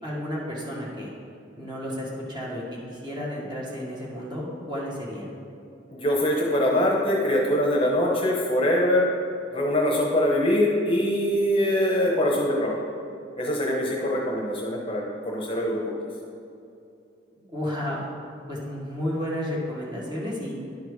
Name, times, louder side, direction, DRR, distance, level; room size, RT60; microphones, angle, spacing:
voice 1, 0.0-1.1 1.6-5.3 17.5-18.1 18.5-20.6, equal, 25° right, -5 dB, 1.6 m, -32 dB
voice 2, 5.9-9.1 9.5-12.8 13.4-15.9, left 1 dB, 30° left, -2 dB, 0.9 m, -23 dB
10.5 x 4.6 x 4.8 m, 2.6 s
head